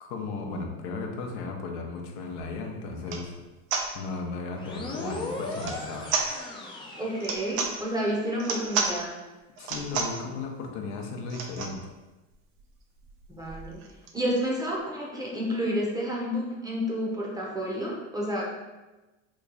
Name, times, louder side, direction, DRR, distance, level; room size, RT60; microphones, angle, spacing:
voice 1, 0.0-3.4 3.9-6.1 9.6-11.8, left 4 dB, 75° left, 2 dB, 0.7 m, -35 dB
sound 1, 2.4-2.5 3.0-3.3 3.7-3.9 5.5-5.8 6.1-6.3 7.2-7.7 8.4-8.9 9.6-10.2 11.3-11.8 12.3-12.4 12.6-12.7 13.0-14.5, right 5 dB, 60° right, 0.6 m, -31 dB
sound 2, 4.6-8.1, left 2 dB, 15° left, 0.4 m, -38 dB
voice 2, 7.0-9.2 13.3-13.8 14.1-18.4, equal, 10° right, -3 dB, 0.7 m, -30 dB
3.0 x 2.3 x 3.7 m, 1.1 s
supercardioid pair, 105°, 36 cm